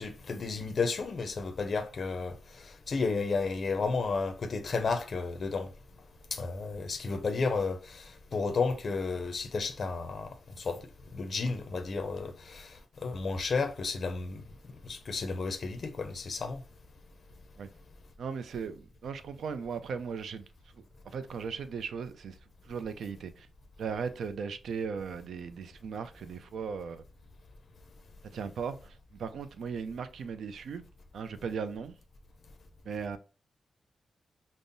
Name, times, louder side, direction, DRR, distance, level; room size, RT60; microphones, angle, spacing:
voice 1, 0.0-2.3 2.6-5.7 6.3-10.3 10.6-10.8 11.2-12.7 13.0-14.4 14.8-16.6, left 4 dB, 45° left, 0.4 m, -32 dB
voice 2, 18.2-20.4 21.0-22.4 22.6-23.5 23.8-27.0 28.3-30.9 31.1-32.0 32.8-33.2, right 6 dB, 80° right, 0.4 m, -37 dB
5.3 x 2.0 x 2.6 m
wide cardioid pair, 150°, 0 cm